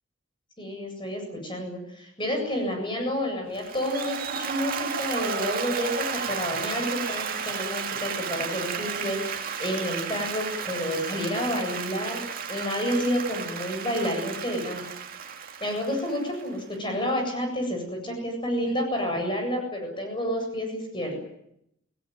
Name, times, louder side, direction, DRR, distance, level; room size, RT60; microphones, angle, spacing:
voice 1, 0.6-12.2 12.5-14.9 15.6-21.2, equal, 25° left, 2 dB, 7.9 m, -30 dB
Applause, 3.5-16.7, right 6 dB, 45° right, 2.4 m, -33 dB
29.5 x 18.5 x 9.5 m, 0.77 s
head